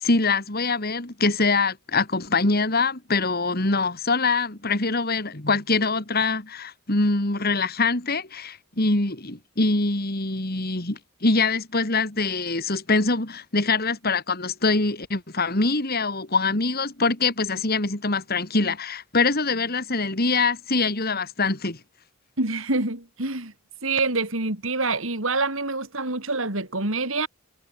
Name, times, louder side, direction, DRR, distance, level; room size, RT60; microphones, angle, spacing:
voice 1, 0.0-21.8, left 3 dB, 45° left, 2.7 m, -24 dB
voice 2, 22.4-23.5 23.8-27.3, right 3 dB, 65° right, 4.1 m, -26 dB
head